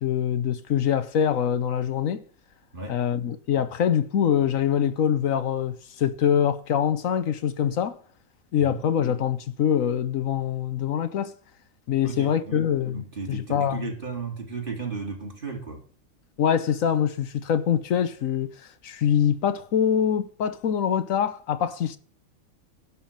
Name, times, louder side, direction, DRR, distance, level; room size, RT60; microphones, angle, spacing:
voice 1, 0.0-2.2 2.9-8.0 8.5-11.3 11.9-13.0 13.3-13.9 16.4-18.5 18.8-22.0, left 9 dB, 75° left, 1.2 m, -24 dB
voice 2, 12.0-15.8, right 4 dB, 40° right, 3.0 m, -35 dB
11.0 x 6.1 x 8.7 m
omnidirectional pair, 1.5 m